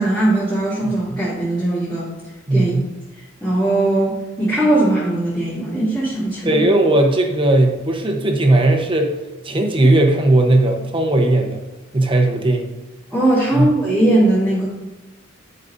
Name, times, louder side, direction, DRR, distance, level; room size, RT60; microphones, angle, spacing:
voice 1, 0.0-2.1 2.5-2.7 3.4-6.6 13.1-14.7, right 1 dB, 5° left, -13 dB, 2.6 m, -19 dB
voice 2, 2.5-2.8 6.4-9.1 9.4-11.6 11.9-12.7 13.5-13.7, right 2 dB, 25° right, 3 dB, 1.0 m, -17 dB
11.5 x 5.4 x 2.6 m, 1.0 s
head